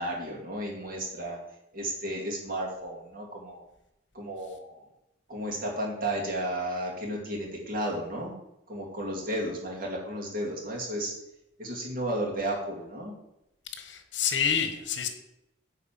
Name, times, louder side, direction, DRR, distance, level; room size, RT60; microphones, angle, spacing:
voice 1, 0.0-1.4 1.7-3.6 4.1-4.8 5.3-8.3 8.7-11.1 11.6-13.1, right 1 dB, 50° right, -1 dB, 2.5 m, -33 dB
voice 2, 13.7-15.1, left 7 dB, 80° left, 8 dB, 1.2 m, -28 dB
9.5 x 4.1 x 7.3 m, 0.87 s
head